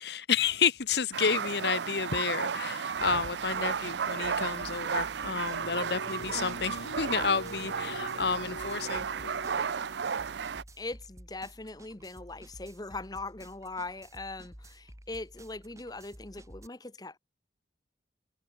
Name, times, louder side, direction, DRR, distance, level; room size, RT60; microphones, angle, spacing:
voice 1, 0.0-9.1, left 6 dB, 60° left, 1.0 m, -30 dB
sound 1, 1.0-1.2 1.5-16.7, right 1 dB, 15° right, 4.0 m, -52 dB
sound 2, 1.1-10.6, right 6 dB, 65° right, 0.5 m, -33 dB
sound 3, 5.6-10.2, left 1 dB, 85° left, 7.3 m, -45 dB
voice 2, 10.8-17.2, left 2 dB, 20° left, 1.0 m, -40 dB
head